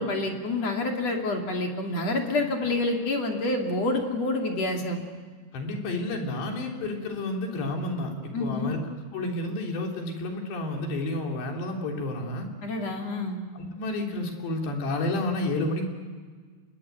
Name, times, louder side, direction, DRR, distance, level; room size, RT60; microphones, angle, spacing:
voice 1, 0.0-5.0 8.3-8.7 12.6-13.4, left 2 dB, 45° left, 2 dB, 3.2 m, -28 dB
voice 2, 5.5-8.8 9.1-12.5 13.5-15.9, left 2 dB, 80° left, 1 dB, 5.5 m, -30 dB
26.0 x 21.0 x 9.4 m, 1.5 s
omnidirectional pair, 4.9 m